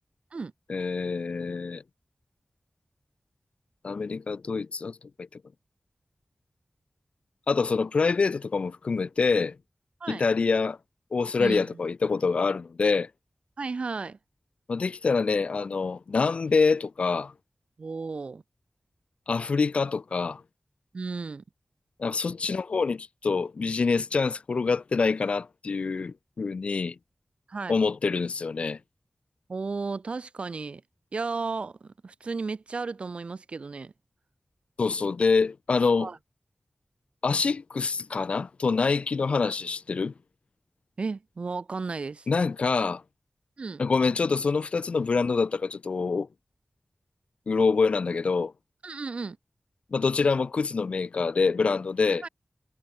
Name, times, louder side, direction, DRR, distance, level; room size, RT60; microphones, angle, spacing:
voice 1, 0.7-1.8 3.8-5.4 7.5-9.6 10.1-10.8 11.1-13.1 14.7-17.3 19.3-20.4 22.0-26.9 27.7-28.8 34.8-36.1 37.2-40.1 42.3-43.0 43.8-46.3 47.5-48.5 49.9-52.2, left 4 dB, 80° left, 1.5 m, -26 dB
voice 2, 11.4-11.8 13.6-14.2 17.8-18.4 20.9-21.4 27.5-27.8 29.5-30.8 31.1-33.9 36.0-36.2 41.0-42.3 43.6-43.8 48.8-49.4 52.2-52.3, right 4 dB, 70° right, 5.9 m, -34 dB
wide cardioid pair, 90°, 2 cm